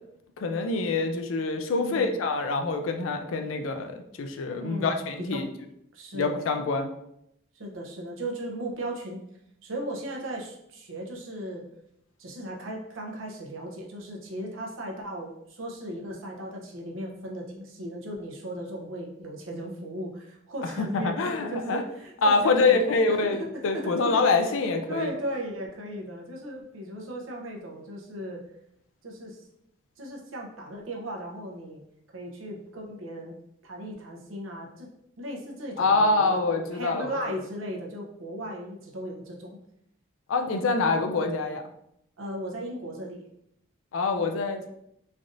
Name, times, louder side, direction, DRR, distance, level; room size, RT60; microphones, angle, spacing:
voice 1, 0.4-5.5 6.1-6.9 20.8-21.8 22.2-25.1 35.8-37.1 40.3-41.6 43.9-44.7, left 3 dB, 85° left, 5 dB, 0.4 m, -25 dB
voice 2, 1.7-2.2 4.5-5.0 5.3-5.4 5.9-6.4 7.5-9.2 9.6-11.6 12.2-23.4 23.7-24.6 24.9-28.4 29.0-29.4 30.0-31.8 32.1-33.4 33.6-34.9 35.2-39.6 40.8-41.0 42.2-43.3, right 1 dB, 85° right, 0 dB, 0.7 m, -37 dB
3.2 x 2.6 x 2.5 m, 0.77 s
head